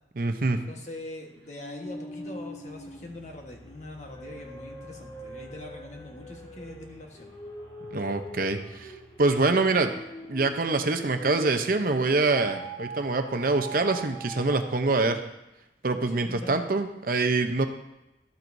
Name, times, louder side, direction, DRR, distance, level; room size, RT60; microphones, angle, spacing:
voice 1, 0.2-0.6 7.9-9.9 10.3-15.2 15.8-17.7, right 3 dB, 50° right, 7 dB, 0.7 m, -25 dB
voice 2, 0.7-7.3 16.1-16.6, left 1 dB, 40° left, 1 dB, 1.3 m, -42 dB
sound 1, 1.6-11.8 12.3-15.0, right 1 dB, 25° left, 1.4 m, -43 dB
13.0 x 7.5 x 2.7 m, 0.93 s
head